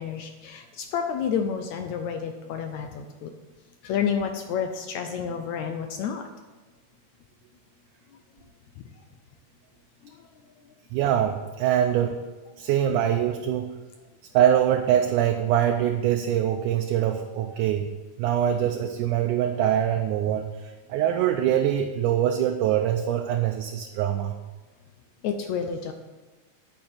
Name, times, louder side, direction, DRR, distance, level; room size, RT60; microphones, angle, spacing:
voice 1, 0.0-3.3 3.8-6.3 8.8-8.9 10.0-10.2 25.2-25.9, left 7 dB, 75° left, 6 dB, 1.7 m, -30 dB
voice 2, 10.9-12.2 12.6-13.8 14.3-17.9 18.2-24.4, right 10 dB, 75° right, 5 dB, 2.0 m, -23 dB
9.0 x 6.5 x 8.6 m, 1.2 s
omnidirectional pair, 4.0 m